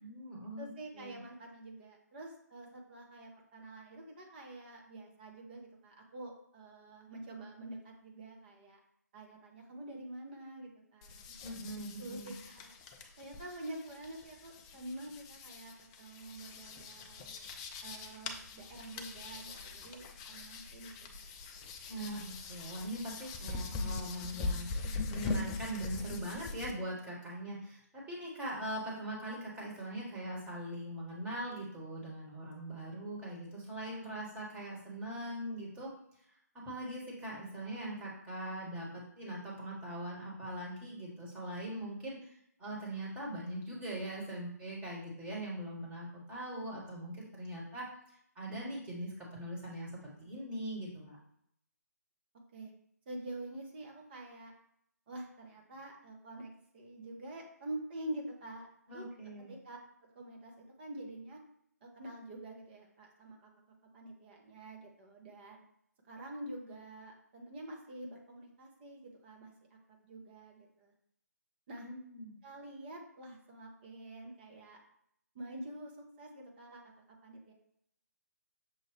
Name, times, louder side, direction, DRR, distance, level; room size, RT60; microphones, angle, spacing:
voice 1, 0.0-0.7 0.9-1.2 11.4-12.3 21.9-35.9 36.5-49.9 50.2-51.2 58.9-59.5 71.8-72.4, right 1 dB, 10° right, -4 dB, 1.5 m, -41 dB
voice 2, 0.6-8.8 9.1-11.4 12.0-12.7 13.2-17.3 17.8-20.9 52.5-52.7 53.1-54.5 55.1-59.0 59.5-61.4 61.8-63.5 63.9-65.6 66.1-70.9 71.7-71.9 72.4-74.8 75.3-77.5, right 1 dB, 35° right, 0 dB, 1.0 m, -47 dB
sound 1, 11.0-26.7, left 3 dB, 20° left, 0.4 m, -42 dB
6.4 x 2.5 x 3.2 m, 0.71 s
figure-of-eight pair, 145°, 9 cm